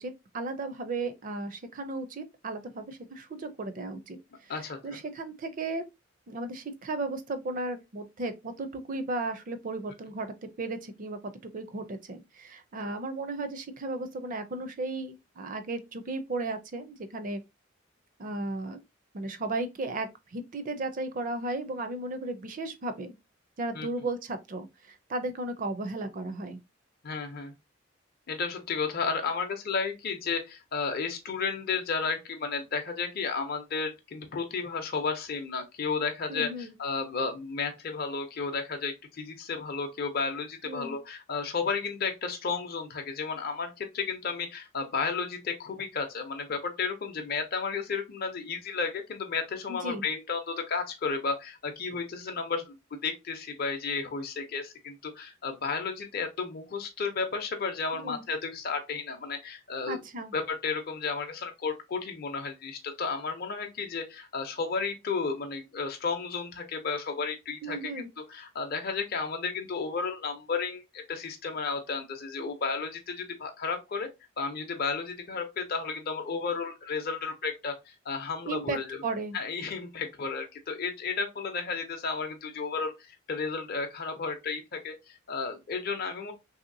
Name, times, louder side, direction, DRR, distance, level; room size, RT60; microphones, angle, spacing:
voice 1, 0.0-5.8 6.3-17.4 18.2-18.8 19.1-23.1 23.6-26.6 36.3-36.7 40.6-41.0 49.7-50.0 58.0-58.2 59.9-60.3 67.6-68.1 78.5-79.4, right 2 dB, 45° right, 0.5 m, -35 dB
voice 2, 4.5-4.8 23.7-23.9 27.0-27.5 28.3-60.0 60.3-68.0 68.3-74.1 74.4-79.0 79.3-86.3, left 5 dB, 50° left, 0.6 m, -33 dB
3.2 x 2.7 x 2.6 m
head